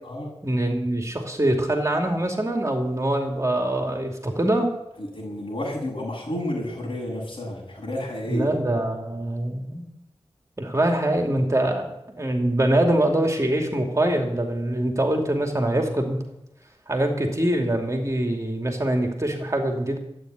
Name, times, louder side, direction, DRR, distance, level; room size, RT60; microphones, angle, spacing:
voice 1, 0.4-4.7 8.3-9.9 10.6-16.2 16.9-20.0, right 1 dB, 30° right, 2 dB, 2.8 m, -24 dB
voice 2, 5.0-8.5, left 1 dB, 55° left, -2 dB, 7.5 m, -31 dB
13.5 x 9.3 x 9.4 m, 0.82 s
wide cardioid pair, 65°, 10 cm